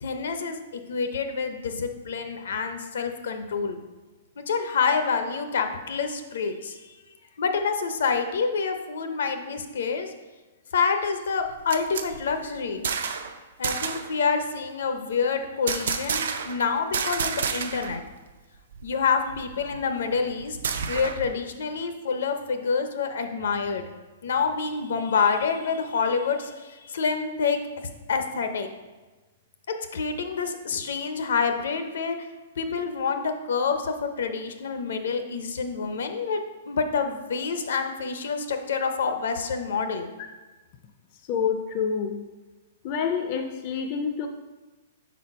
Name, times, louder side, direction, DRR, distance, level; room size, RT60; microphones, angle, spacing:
voice 1, 0.0-3.8 4.4-6.9 7.4-10.1 10.7-12.9 13.6-18.0 18.8-20.6 20.9-23.8 24.2-27.6 28.1-28.7 29.9-32.3 32.6-36.4 36.7-40.1, left 5 dB, 75° left, 7 dB, 0.7 m, -27 dB
sound 1, 11.4-13.3 13.6-14.1 15.7-16.6 16.9-18.0 18.3-18.4 18.7-21.3, right 6 dB, 75° right, 0.5 m, -30 dB
voice 2, 41.3-42.2 42.8-44.3, left 6 dB, 35° left, 5 dB, 0.4 m, -27 dB
4.7 x 4.3 x 5.3 m, 1.2 s
hypercardioid pair, 165°, 0 cm